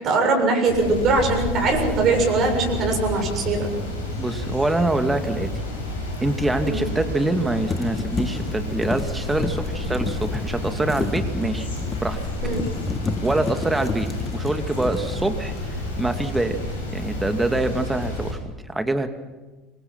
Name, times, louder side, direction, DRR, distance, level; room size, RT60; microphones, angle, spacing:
voice 1, 0.0-3.7 6.6-6.8 12.4-12.7, right 3 dB, 45° right, 3 dB, 7.0 m, -21 dB
sound 1, 0.7-18.3, left 2 dB, 80° left, 6.4 m, -30 dB
sound 2, 3.8-3.9 7.0-7.4 7.7-15.9 16.2-16.6, left 3 dB, 25° left, 1.9 m, -32 dB
voice 2, 4.2-5.5 6.2-11.7 12.0-12.2 13.2-16.6 16.9-19.1, right 2 dB, 10° right, 7 dB, 2.4 m, -25 dB
27.0 x 25.0 x 5.9 m, 1.2 s
figure-of-eight pair, 65°, 0 cm